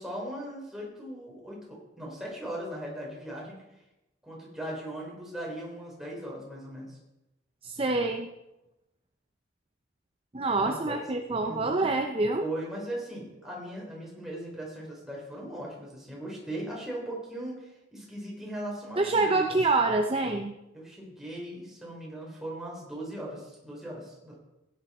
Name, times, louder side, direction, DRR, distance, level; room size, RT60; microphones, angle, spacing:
voice 1, 0.0-3.6 4.2-7.0 10.6-11.0 11.4-11.9 12.4-19.5 20.7-24.4, right 1 dB, ahead, -4 dB, 4.0 m, -39 dB
voice 2, 7.6-8.3 10.3-12.4 19.0-20.5, right 3 dB, 30° right, 5 dB, 0.6 m, -26 dB
15.5 x 10.5 x 4.3 m, 0.95 s
head